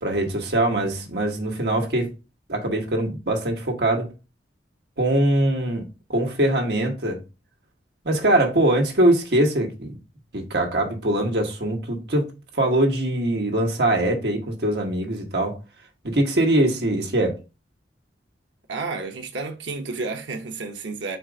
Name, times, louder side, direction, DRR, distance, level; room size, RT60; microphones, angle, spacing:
voice 1, 0.0-2.1 2.5-4.1 5.0-5.8 6.1-7.2 8.0-10.0 10.3-15.6 16.0-17.4, right 1 dB, 65° right, 1.2 m, -22 dB
voice 2, 18.7-21.2, right 3 dB, 90° right, 0.7 m, -31 dB
4.5 x 2.4 x 4.8 m
head